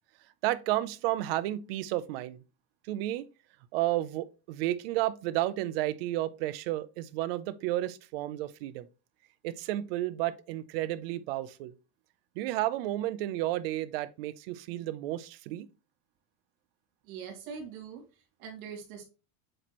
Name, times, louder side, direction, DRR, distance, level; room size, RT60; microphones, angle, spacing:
voice 1, 0.4-2.4 2.9-3.2 3.7-8.9 9.4-11.7 12.4-15.7, right 15 dB, 45° right, 0.5 m, -32 dB
voice 2, 17.0-19.0, right 6 dB, 75° right, 2.8 m, -43 dB
7.7 x 4.2 x 3.0 m
supercardioid pair, 175°, 42 cm